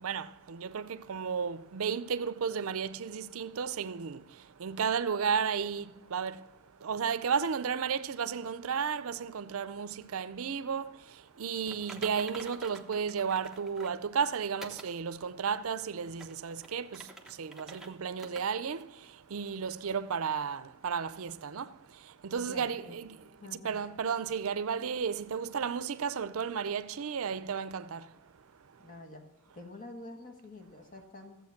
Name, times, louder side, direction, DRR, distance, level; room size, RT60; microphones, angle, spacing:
voice 1, 0.0-4.2 4.6-5.8 6.1-6.4 6.8-10.9 11.4-17.0 17.4-18.8 19.3-21.7 22.2-23.2 23.5-28.0, right 6 dB, 70° right, 0.5 m, -33 dB
Typing, 11.7-14.0 14.6-14.9 15.4-15.5 16.1-17.9 18.2-18.4 18.8-18.9 19.5-19.6, right 2 dB, ahead, 1.0 m, -48 dB
voice 2, 22.4-23.0 23.4-23.8 28.8-29.3 29.5-31.4, left 2 dB, 40° left, 1.6 m, -47 dB
14.0 x 7.9 x 5.8 m
head